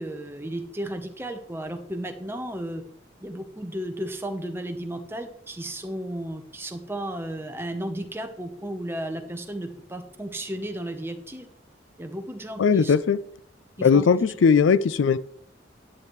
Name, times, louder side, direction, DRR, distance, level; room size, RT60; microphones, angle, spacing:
voice 1, 0.0-2.8 3.2-11.5 12.0-12.9 13.8-14.1, right 1 dB, 10° right, 6 dB, 0.9 m, -34 dB
voice 2, 12.6-13.2 13.8-15.2, left 6 dB, 85° left, 17 dB, 0.4 m, -19 dB
10.5 x 9.9 x 3.2 m, 0.64 s
head